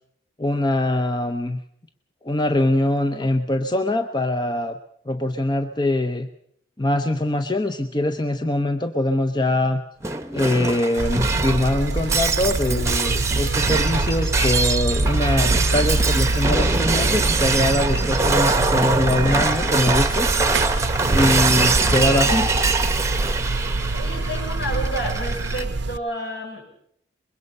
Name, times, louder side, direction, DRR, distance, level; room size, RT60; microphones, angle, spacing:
voice 1, 0.4-1.6 2.2-4.8 5.1-6.3 6.8-9.8 10.3-20.3 21.1-22.5, left 1 dB, 25° left, 7 dB, 0.8 m, -23 dB
Shatter, 10.0-25.6, right 3 dB, 15° right, 1.0 m, -23 dB
Buzz, 11.0-26.0, right 2 dB, 70° right, 0.7 m, -25 dB
voice 2, 23.9-26.6, right 1 dB, 65° left, 1 dB, 6.3 m, -30 dB
23.5 x 21.5 x 5.5 m, 0.70 s
head